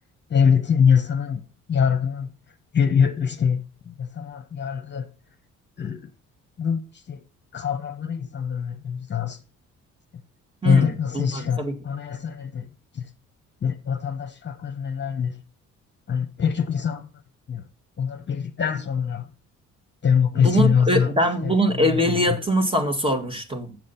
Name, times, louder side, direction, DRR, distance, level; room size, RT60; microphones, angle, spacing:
voice 1, 0.3-1.4 1.7-2.3 2.7-3.6 3.9-5.1 5.8-6.1 6.6-7.2 7.5-9.4 10.6-12.7 12.9-13.1 13.6-15.4 16.1-17.1 17.5-17.6 18.0-19.3 20.0-21.1 21.4-21.5 21.8-22.2, left 7 dB, 35° left, 1.1 m, -23 dB
voice 2, 10.6-11.8 20.4-23.8, right 1 dB, 15° right, 1.9 m, -23 dB
7.6 x 7.5 x 5.7 m
cardioid pair, 90°, 30 cm